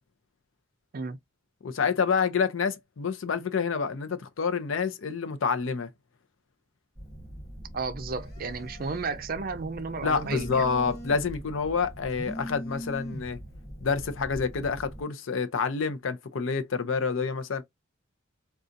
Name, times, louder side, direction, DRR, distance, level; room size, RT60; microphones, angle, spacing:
voice 1, 1.6-5.9 10.0-13.4 13.8-17.6, left 5 dB, 80° left, 0.5 m, -28 dB
Telephone, 7.0-15.0, equal, 30° left, 2.0 m, -41 dB
voice 2, 7.7-10.6, right 4 dB, 45° right, 0.4 m, -33 dB
3.8 x 2.4 x 2.5 m
head